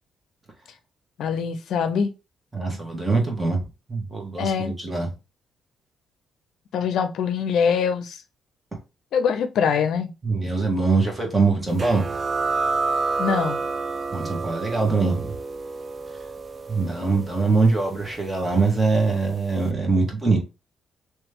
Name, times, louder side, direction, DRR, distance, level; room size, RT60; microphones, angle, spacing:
voice 1, 1.2-2.1 4.4-4.7 6.7-8.2 9.1-10.1 13.2-13.6, left 6 dB, 75° left, 0.5 m, -23 dB
voice 2, 2.5-5.1 10.2-12.1 14.1-15.3 16.7-20.4, right 3 dB, 20° right, 1.5 m, -23 dB
sound 1, 11.8-19.0, right 4 dB, 35° right, 0.4 m, -29 dB
3.1 x 3.1 x 3.4 m
cardioid pair, 90°, 0 cm